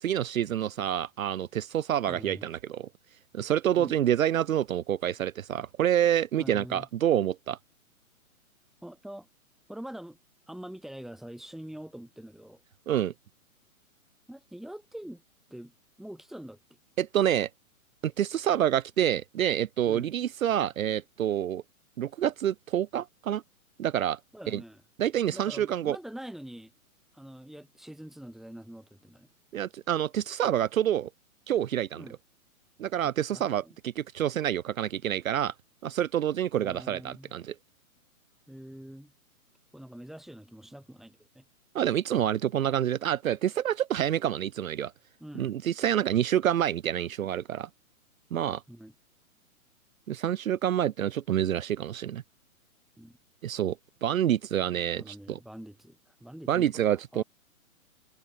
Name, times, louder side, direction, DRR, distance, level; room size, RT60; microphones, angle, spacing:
voice 1, 0.0-2.9 3.3-7.6 12.9-13.1 17.0-17.5 18.0-21.6 22.0-23.4 23.8-24.2 24.5-24.6 25.0-26.0 29.5-31.1 31.5-32.0 32.8-35.5 35.8-37.5 41.7-44.9 45.4-47.7 48.3-48.6 50.1-52.2 53.4-53.8 54.0-55.4 56.5-57.2, right 10 dB, 70° right, 0.8 m, -27 dB
voice 2, 2.1-2.5 3.8-4.0 6.4-6.9 8.8-9.3 9.7-10.2 10.5-12.6 14.3-15.2 15.5-16.6 19.9-20.1 24.3-24.8 25.3-26.7 27.1-29.3 32.0-32.2 33.0-33.8 36.6-37.3 38.5-39.1 39.7-41.4 45.2-45.6 48.7-48.9 53.0-53.2 55.0-57.2, right 1 dB, ahead, 2.5 m, -44 dB
hypercardioid pair, 135°, 43 cm